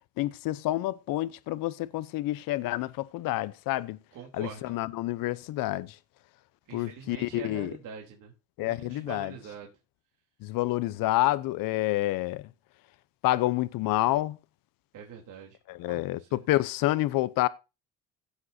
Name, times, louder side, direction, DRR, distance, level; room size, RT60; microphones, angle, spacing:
voice 1, 0.2-4.0 4.3-6.0 6.7-7.7 8.6-9.3 10.4-12.5 13.2-14.4 15.7-17.5, left 16 dB, 80° left, 0.8 m, -28 dB
voice 2, 4.1-4.7 6.7-8.3 8.6-9.7 14.9-15.6 15.9-16.4, right 7 dB, 65° right, 3.5 m, -44 dB
16.0 x 7.5 x 2.7 m
cardioid pair, 105°, 33 cm